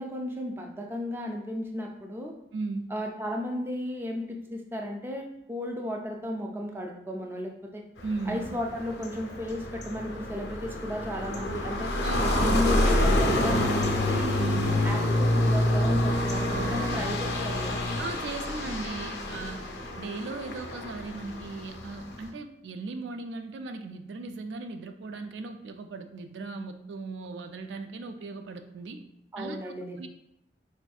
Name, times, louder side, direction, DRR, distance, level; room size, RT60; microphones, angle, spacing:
voice 1, 0.0-2.3 2.9-7.8 8.3-11.9 12.4-14.5 14.8-17.8 29.3-30.1, left 1 dB, 15° right, 1 dB, 0.3 m, -34 dB
voice 2, 2.5-2.9 8.0-8.5 12.0-12.6 13.1-13.3 14.3-14.8 16.5-17.2 18.0-19.6 20.0-29.0 29.4-30.1, right 3 dB, 90° right, 7 dB, 0.3 m, -37 dB
sound 1, 8.0-22.3, left 1 dB, 85° left, 0.6 m, -28 dB
4.2 x 2.6 x 2.3 m, 0.79 s
head